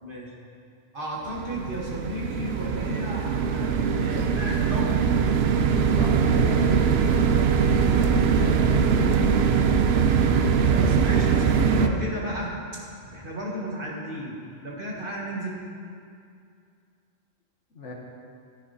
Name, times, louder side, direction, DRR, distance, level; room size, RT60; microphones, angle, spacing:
voice 1, 0.0-0.3 0.9-5.3 10.6-12.8 13.1-15.6, equal, 45° right, -3 dB, 2.0 m, -34 dB
sound 1, 1.3-11.9, right 6 dB, 60° right, 0.8 m, -22 dB
voice 2, 6.0-9.4 17.7-17.9, left 1 dB, 70° left, -1 dB, 1.8 m, -36 dB
13.5 x 9.3 x 4.3 m, 2.3 s
omnidirectional pair, 1.3 m